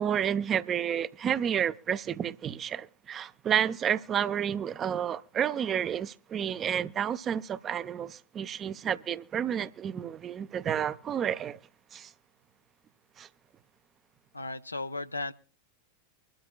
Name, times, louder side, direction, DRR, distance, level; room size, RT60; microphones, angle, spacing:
voice 1, 0.0-11.6 11.9-12.1 13.2-13.3, right 9 dB, 25° right, 0.5 m, -30 dB
voice 2, 14.3-15.3, left 2 dB, 80° left, 0.5 m, -35 dB
25.0 x 12.5 x 2.2 m
figure-of-eight pair, 90°, 0 cm